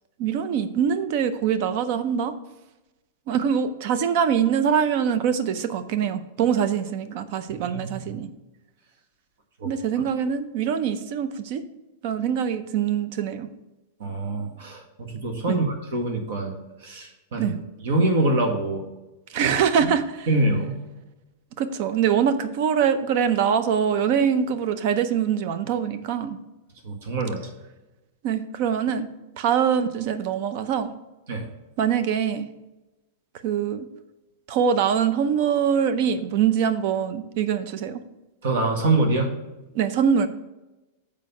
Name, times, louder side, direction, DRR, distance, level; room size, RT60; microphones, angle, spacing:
voice 1, 0.2-2.3 3.3-8.3 9.6-11.6 12.0-13.5 15.5-15.6 17.4-17.6 19.3-20.3 21.6-26.4 28.2-29.1 29.3-30.9 31.8-32.5 33.4-33.9 34.5-38.0 39.7-40.3, right 7 dB, 40° right, 11 dB, 0.6 m, -23 dB
voice 2, 7.5-8.1 9.6-9.7 14.0-14.8 15.1-16.5 16.8-17.5 17.8-18.8 19.4-19.5 20.3-20.8 26.8-27.4 31.3-31.5 38.4-39.3, right 2 dB, 60° right, 3 dB, 1.7 m, -24 dB
6.7 x 5.2 x 5.4 m, 1.0 s
supercardioid pair, 180°, 0 cm